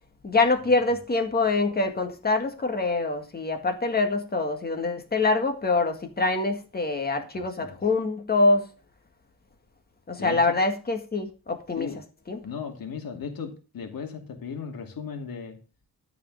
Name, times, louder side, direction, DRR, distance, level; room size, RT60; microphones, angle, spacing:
voice 1, 0.2-8.7 10.1-11.9 12.3-12.4, left 3 dB, 25° left, 2.0 m, -25 dB
voice 2, 7.3-7.8 10.2-10.6 11.8-12.0 12.4-15.6, left 6 dB, 70° left, 2.6 m, -36 dB
13.5 x 5.0 x 6.4 m
wide cardioid pair, 155°, 35 cm